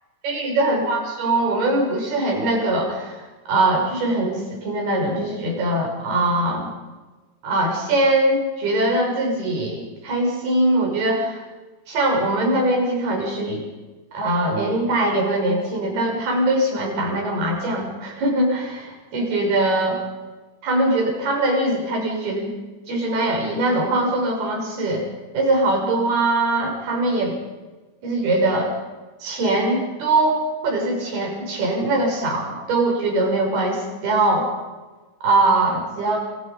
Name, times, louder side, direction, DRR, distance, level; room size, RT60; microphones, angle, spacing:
voice 1, 0.2-6.7 7.4-11.4 11.9-13.6 14.1-20.0 20.6-22.5 22.9-25.0 25.3-27.4 28.0-28.7 29.2-34.5 35.2-36.2, right 2 dB, 50° right, 1 dB, 8.3 m, -22 dB
28.5 x 28.0 x 5.4 m, 1.2 s
omnidirectional pair, 5.8 m